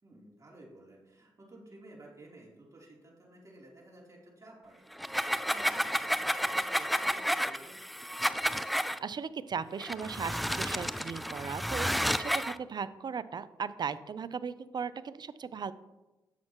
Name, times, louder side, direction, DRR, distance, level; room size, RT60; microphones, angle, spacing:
voice 1, 0.0-7.8, right 1 dB, 40° right, -3 dB, 3.2 m, -54 dB
sound 1, 4.9-9.0 9.8-12.6, equal, ahead, 0.4 m, -31 dB
voice 2, 8.7-11.9 12.2-15.7, right 6 dB, 55° right, 15 dB, 0.5 m, -37 dB
10.0 x 7.6 x 3.0 m, 1.0 s
supercardioid pair, 50°, 9 cm